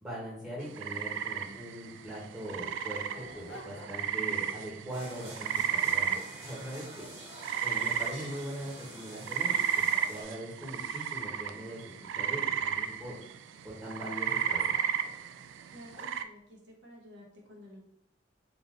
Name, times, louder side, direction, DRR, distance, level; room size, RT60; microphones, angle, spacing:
voice 1, 0.0-7.1 7.6-11.8 12.1-13.2 13.6-14.8, equal, 10° right, -8 dB, 1.3 m, -41 dB
sound 1, 0.6-16.2, right 8 dB, 85° right, 0.3 m, -33 dB
Dog, 1.9-2.0 2.6-4.2 4.6-5.0 5.5-7.0 7.5-8.4 9.0-9.1 9.5-11.9 12.5-13.2 14.4-15.3 15.9-16.3, equal, 80° left, 0.8 m, -52 dB
sound 2, 4.9-10.2, right 1 dB, 35° right, 1.6 m, -48 dB
voice 2, 15.7-17.8, equal, 70° right, -1 dB, 1.2 m, -52 dB
3.7 x 2.7 x 3.8 m, 0.72 s
head